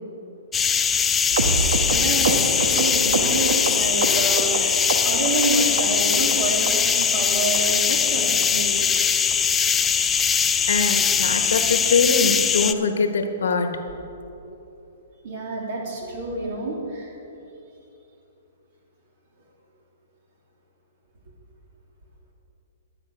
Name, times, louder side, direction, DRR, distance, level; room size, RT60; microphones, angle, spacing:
sound 1, 0.5-12.7, left 7 dB, 15° left, 0.4 m, -21 dB
sound 2, 1.3-4.6 4.9-5.5 5.8-6.4 6.7-6.8 7.0-7.2 7.5-7.6 7.9-8.1 8.4-8.5 8.8-9.0 9.3-9.4 9.7-9.9 10.2-10.3 10.5-10.7 11.1-11.2, right 3 dB, 75° right, 1.4 m, -26 dB
voice 1, 1.9-8.9 14.5-14.6 15.2-17.1, right 2 dB, 55° right, -1 dB, 3.0 m, -28 dB
voice 2, 10.7-13.8, left 4 dB, 80° left, 6 dB, 1.2 m, -22 dB
12.0 x 8.7 x 6.0 m, 2.9 s
hypercardioid pair, 145°, 0 cm